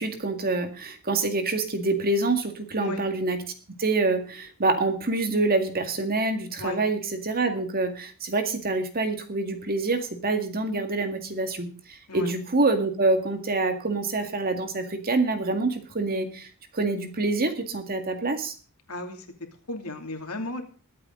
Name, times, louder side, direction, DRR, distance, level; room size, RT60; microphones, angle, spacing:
voice 1, 0.0-3.4 3.8-16.5 16.7-18.5, right 3 dB, 45° right, 7 dB, 2.0 m, -26 dB
voice 2, 18.9-20.6, left 1 dB, 85° left, 4 dB, 2.7 m, -35 dB
22.0 x 8.5 x 3.9 m, 0.39 s
head